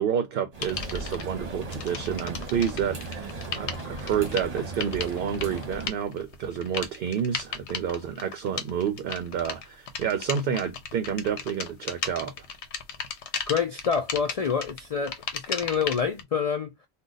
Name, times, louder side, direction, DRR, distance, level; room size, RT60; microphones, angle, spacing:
voice 1, 0.0-12.3, right 8 dB, 65° right, 0.7 m, -29 dB
sound 1, 0.5-5.9, right 3 dB, 40° right, 0.9 m, -37 dB
sound 2, 0.6-1.2 1.7-16.2, left 6 dB, 80° left, 1.0 m, -36 dB
voice 2, 13.5-16.7, left 6 dB, 55° left, 0.4 m, -27 dB
2.4 x 2.3 x 3.9 m
omnidirectional pair, 1.1 m